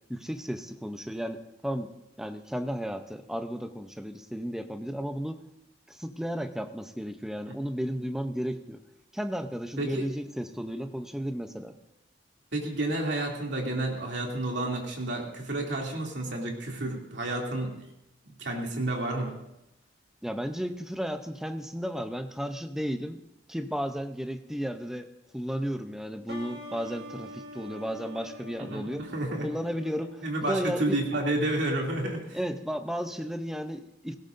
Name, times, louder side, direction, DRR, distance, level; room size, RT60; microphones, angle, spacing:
voice 1, 0.1-1.9 2.2-5.4 5.9-8.8 9.1-11.8 20.2-23.2 23.5-25.1 25.3-29.1 29.4-31.0 32.3-34.2, equal, 5° right, 7 dB, 0.7 m, -34 dB
voice 2, 12.5-17.9 18.4-19.4 28.6-29.5 30.2-32.4, right 1 dB, 75° right, -1 dB, 2.7 m, -30 dB
sound 1, 26.3-31.7, left 1 dB, 60° right, 1.7 m, -46 dB
17.5 x 17.0 x 2.6 m, 0.85 s
head